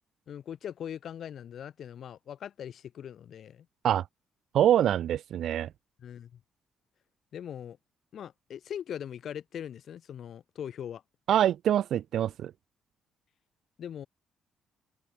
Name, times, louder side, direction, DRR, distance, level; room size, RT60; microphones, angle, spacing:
voice 1, 0.3-3.7 6.0-6.4 7.3-7.8 8.1-11.0 13.8-14.1, left 9 dB, 65° left, 6.3 m, -40 dB
voice 2, 4.5-5.7 11.3-12.5, right 11 dB, 70° right, 0.7 m, -25 dB
open air
cardioid pair, 90°, 0 cm